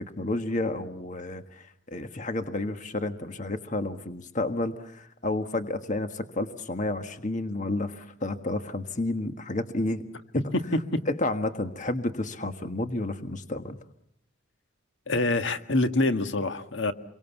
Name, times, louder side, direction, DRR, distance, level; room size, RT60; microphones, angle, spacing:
voice 1, 0.0-10.0 11.1-13.8, left 2 dB, 35° left, 7 dB, 1.6 m, -31 dB
voice 2, 15.1-16.9, left 2 dB, 60° left, 8 dB, 1.7 m, -25 dB
30.0 x 24.0 x 7.1 m, 0.74 s
head